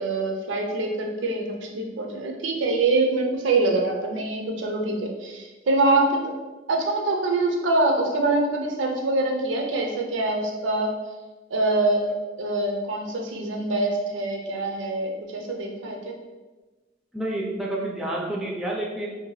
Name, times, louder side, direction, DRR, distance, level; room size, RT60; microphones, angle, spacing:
voice 1, 0.0-6.3 6.7-10.9 11.5-12.1 12.4-16.2, right 2 dB, 70° right, 2 dB, 0.4 m, -24 dB
voice 2, 17.1-19.1, right 1 dB, ahead, -3 dB, 0.4 m, -29 dB
2.7 x 2.2 x 3.0 m, 1.2 s
head